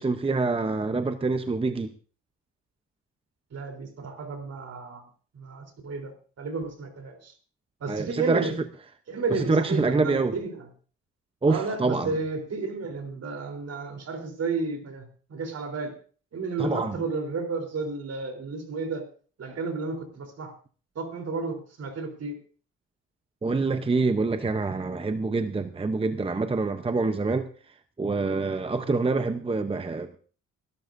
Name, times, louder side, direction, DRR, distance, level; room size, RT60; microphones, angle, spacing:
voice 1, 0.0-1.9 7.9-8.5 9.5-10.3 11.4-12.1 16.6-17.0 23.4-30.2, right 3 dB, 20° right, 9 dB, 0.8 m, -26 dB
voice 2, 3.5-5.0 5.3-6.1 6.4-7.3 7.8-8.6 9.1-10.6 11.5-15.9 16.3-19.1 19.4-20.5 21.0-22.3 26.1-26.2, right 4 dB, 55° right, 5 dB, 3.7 m, -32 dB
22.5 x 12.5 x 2.6 m, 0.40 s
cardioid pair, 90°, 30 cm